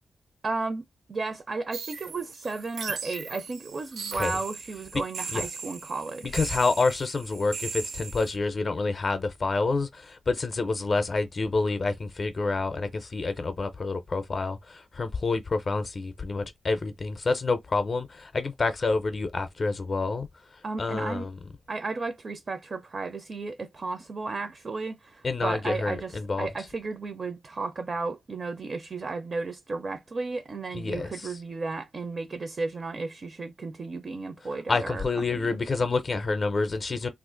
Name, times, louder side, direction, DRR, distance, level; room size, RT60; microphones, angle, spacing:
voice 1, 0.4-6.4 20.6-21.3 21.7-35.0 35.3-35.6, right 3 dB, 40° right, 0.4 m, -34 dB
sound 1, 1.7-8.4, right 5 dB, 85° right, 0.6 m, -38 dB
voice 2, 6.3-20.3 20.8-21.3 25.2-26.5 30.7-31.3 34.7-37.1, left 3 dB, 40° left, 0.5 m, -28 dB
2.8 x 2.4 x 3.7 m
wide cardioid pair, 130°, 0 cm